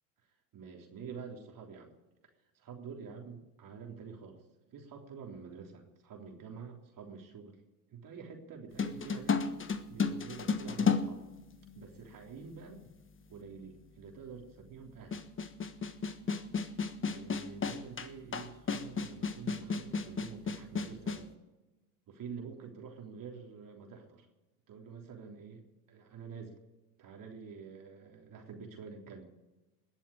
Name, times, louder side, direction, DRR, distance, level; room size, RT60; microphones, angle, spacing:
voice 1, 0.5-1.9 2.5-4.4 4.7-7.6 7.9-9.4 9.9-11.2 11.8-12.8 13.3-15.2 17.0-21.3 22.1-24.3 24.7-25.6 25.9-26.6 27.0-29.3, right 5 dB, 50° right, 2 dB, 3.6 m, -47 dB
sound 1, 8.8-12.0 12.9-13.0 15.1-21.3, left 5 dB, 30° left, 1.4 m, -33 dB
20.5 x 7.0 x 8.8 m, 1.1 s
hypercardioid pair, 80°, 43 cm